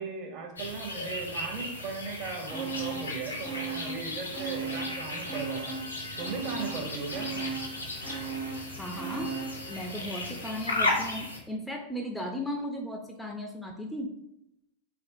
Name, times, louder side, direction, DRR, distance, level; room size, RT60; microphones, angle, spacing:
voice 1, 0.0-5.8 6.2-7.6, right 4 dB, 40° right, 3 dB, 0.7 m, -37 dB
sound 1, 0.6-11.4, left 2 dB, 80° left, 0.6 m, -36 dB
sound 2, 2.5-3.1 3.4-5.0 5.3-9.6 10.0-10.1, right 6 dB, 65° right, 1.1 m, -37 dB
sound 3, 4.1-10.5, equal, 90° right, 0.9 m, -48 dB
voice 2, 8.8-9.3 9.7-14.1, equal, 5° left, 2 dB, 0.4 m, -36 dB
3.4 x 3.3 x 2.6 m, 0.84 s
figure-of-eight pair, 90°, 0 cm